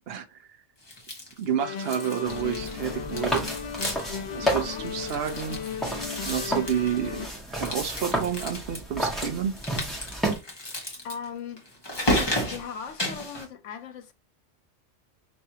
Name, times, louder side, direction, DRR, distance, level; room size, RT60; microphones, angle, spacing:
voice 1, 0.1-0.4 1.4-3.5 4.3-5.6 6.1-9.6, right 9 dB, 60° right, 0.8 m, -30 dB
sound 1, 0.8-1.5 1.8-2.8 3.1-4.2 4.5-4.6 4.9-7.1 7.5-8.8 9.6-13.5, left 1 dB, 20° left, 1.4 m, -33 dB
sound 2, 1.6-7.3, left 7 dB, 45° left, 0.6 m, -36 dB
sound 3, 2.2-10.4, equal, ahead, 1.6 m, -32 dB
voice 2, 4.4-4.9 11.0-11.7 12.5-14.1, left 6 dB, 85° left, 1.1 m, -38 dB
5.6 x 3.1 x 2.8 m
omnidirectional pair, 1.2 m